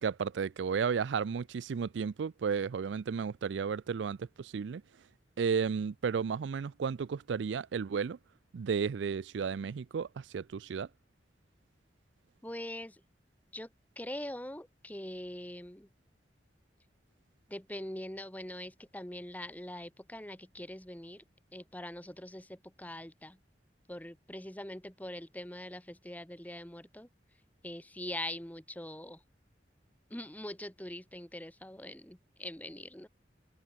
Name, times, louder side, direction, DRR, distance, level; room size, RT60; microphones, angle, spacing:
voice 1, 0.0-4.8 5.4-8.2 8.5-10.9, right 6 dB, 80° right, 0.4 m, -33 dB
voice 2, 12.4-13.0 13.5-13.7 13.9-15.9 17.5-21.2 21.5-23.4 23.9-27.1 27.6-29.2 30.1-33.1, left 1 dB, 10° left, 1.5 m, -43 dB
head